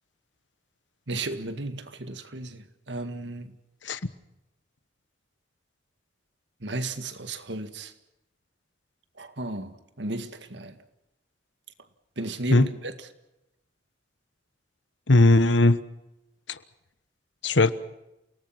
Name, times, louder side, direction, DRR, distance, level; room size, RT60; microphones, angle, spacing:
voice 1, 1.1-3.6 6.6-7.9 9.2-10.8 12.2-13.1, right 2 dB, 70° right, 2.0 m, -34 dB
voice 2, 15.1-15.8 16.5-16.6 17.4-17.7, left 2 dB, 80° left, 1.2 m, -18 dB
29.0 x 18.5 x 5.9 m
head